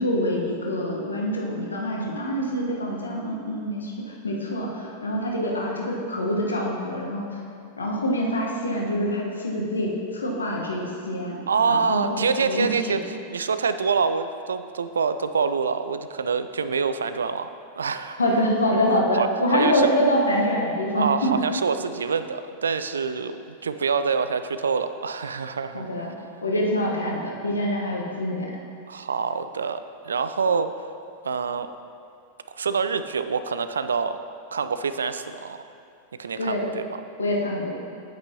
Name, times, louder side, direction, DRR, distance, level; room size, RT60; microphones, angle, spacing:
voice 1, 0.0-7.3 7.8-11.4 11.7-13.0 18.2-21.3 25.7-26.1 26.4-28.5 36.4-36.6 37.2-37.7, equal, 75° left, -2 dB, 1.2 m, -25 dB
voice 2, 11.5-13.0 13.3-17.5 17.8-18.2 18.9-19.9 20.9-25.9 28.9-30.7 31.2-31.7 32.5-34.2 34.5-35.6 36.2-37.0, right 5 dB, 70° right, 11 dB, 0.3 m, -26 dB
8.9 x 8.6 x 2.9 m, 2.6 s
figure-of-eight pair, 90°, 0 cm